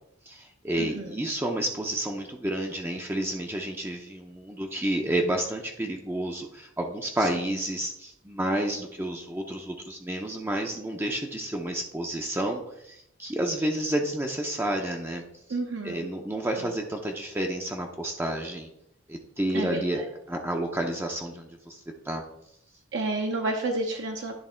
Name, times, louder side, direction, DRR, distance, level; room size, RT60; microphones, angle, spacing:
voice 1, 0.3-15.2 15.8-18.7 19.1-20.0 20.3-22.2, right 1 dB, 10° right, 2 dB, 0.5 m, -30 dB
voice 2, 0.8-1.2 7.2-7.4 15.5-16.1 16.6-16.7 19.5-20.1 22.9-24.3, right 2 dB, 60° right, 2 dB, 0.7 m, -31 dB
10.5 x 3.5 x 4.3 m, 0.80 s
head